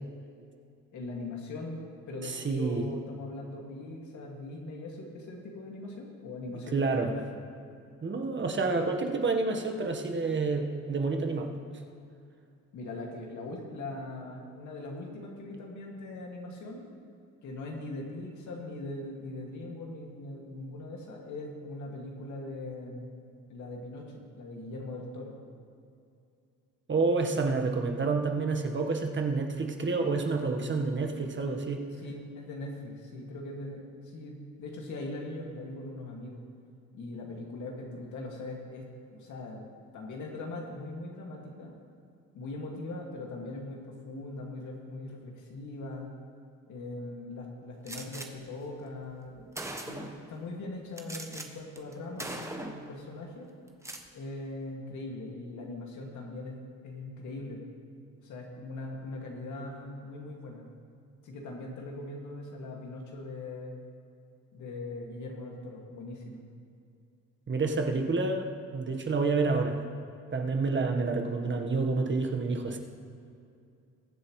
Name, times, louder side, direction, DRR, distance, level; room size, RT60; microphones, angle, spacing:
voice 1, 0.9-7.3 12.7-16.8 17.4-23.1 23.5-25.4 32.0-36.4 36.9-38.9 39.1-39.7 39.9-41.7 42.3-46.1 46.7-49.5 49.8-53.5 54.1-56.6 56.8-57.6 58.2-60.7 61.2-63.8 64.5-66.4, left 2 dB, 75° left, -1 dB, 2.3 m, -40 dB
voice 2, 2.2-2.8 6.7-7.1 8.0-11.5 26.9-31.8 67.5-69.8 70.3-72.8, right 3 dB, 40° right, 3 dB, 1.4 m, -29 dB
Gunshot gunfire, 47.9-48.3 49.1-49.2 49.5-50.2 51.0-51.5 51.8-51.9 52.2-52.9 53.7-54.1, right 1 dB, 10° right, 1.1 m, -39 dB
21.5 x 7.5 x 3.2 m, 2.5 s
cardioid pair, 90°, 30 cm